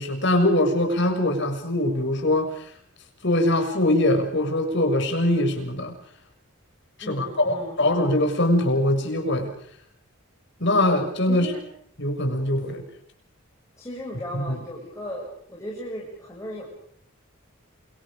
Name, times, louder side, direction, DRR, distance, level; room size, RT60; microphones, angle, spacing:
voice 1, 0.0-2.7 3.2-5.9 7.1-9.5 10.6-11.5 12.0-12.8 14.3-14.6, left 1 dB, 55° left, 4 dB, 6.7 m, -22 dB
voice 2, 7.0-7.8 11.3-11.6 13.8-16.7, equal, 15° left, -4 dB, 7.5 m, -36 dB
30.0 x 28.0 x 5.2 m, 0.65 s
head